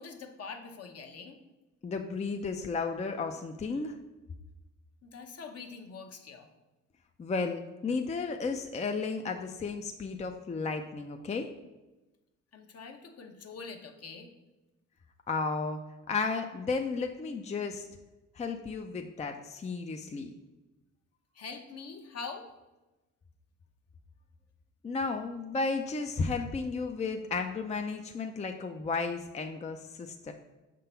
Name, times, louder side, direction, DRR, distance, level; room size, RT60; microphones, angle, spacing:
voice 1, 0.0-1.4 5.0-6.5 12.5-14.3 21.3-22.5, left 5 dB, 55° left, 4 dB, 1.0 m, -44 dB
voice 2, 1.8-4.0 7.2-11.5 15.3-15.8 16.1-17.9 18.3-20.3 24.8-30.3, left 4 dB, 25° left, 5 dB, 0.4 m, -33 dB
5.8 x 3.8 x 5.6 m, 1.1 s
cardioid pair, 90°, 30 cm